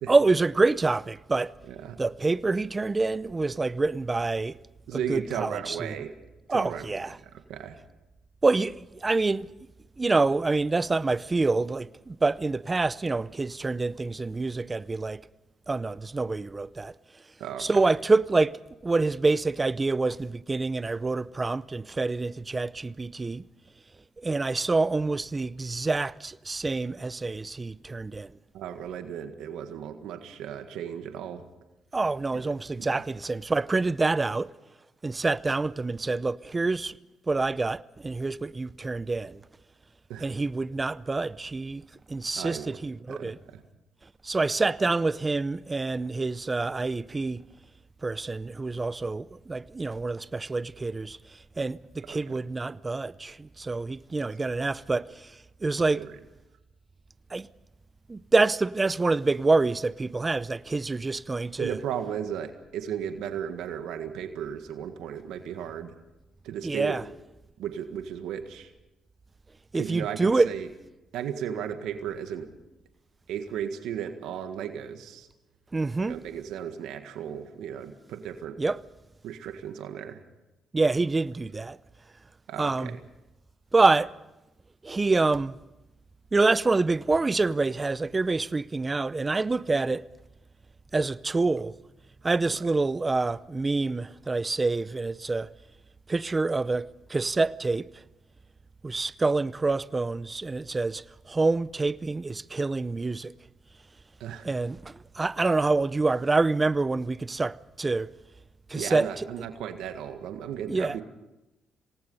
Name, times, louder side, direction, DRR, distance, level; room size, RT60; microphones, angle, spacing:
voice 1, 0.1-1.5 2.0-4.6 4.9-5.8 6.5-7.2 8.4-9.5 10.0-15.2 15.7-16.9 17.6-23.4 24.2-28.3 31.9-34.5 35.0-37.0 37.3-39.4 40.2-43.4 44.2-47.4 48.0-56.1 57.3-57.5 58.1-61.8 66.6-67.0 69.7-70.5 75.7-76.2 78.6-78.8 80.7-81.8 82.6-83.0 83.7-84.1 84.8-85.6 86.3-90.1 90.9-91.8 92.2-95.5 96.1-98.0 98.8-103.3 104.4-108.1 108.7-109.3 110.7-111.0, right 3 dB, 25° right, 0.6 m, -26 dB
voice 2, 1.7-2.0 4.9-6.1 6.5-7.8 17.4-17.7 28.5-31.5 32.3-32.5 32.8-33.0 40.1-40.3 42.4-42.8 43.1-43.6 52.1-52.4 55.9-56.1 61.6-65.9 66.4-67.0 67.6-68.7 69.7-70.7 71.1-72.5 73.3-75.3 76.0-78.6 79.2-80.2 82.5-83.0 92.5-92.6 104.2-104.5 108.7-111.0, right 9 dB, 85° right, 1.7 m, -35 dB
27.0 x 18.5 x 5.5 m
cardioid pair, 90°, 0 cm